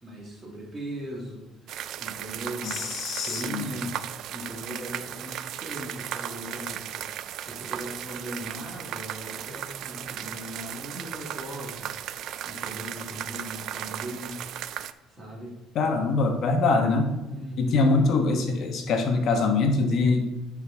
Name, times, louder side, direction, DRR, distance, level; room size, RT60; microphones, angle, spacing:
voice 1, 0.0-1.5 2.0-3.9 4.3-7.1 7.4-11.9 12.5-14.4 15.1-15.6 17.2-17.9, equal, 20° right, -1 dB, 1.6 m, -38 dB
sound 1, 1.7-14.9, right 11 dB, 55° right, 0.3 m, -36 dB
voice 2, 2.6-3.7 15.7-17.1 17.6-20.2, left 3 dB, 50° left, 4 dB, 1.1 m, -23 dB
10.0 x 4.7 x 3.5 m, 1.1 s
cardioid pair, 155°, 0 cm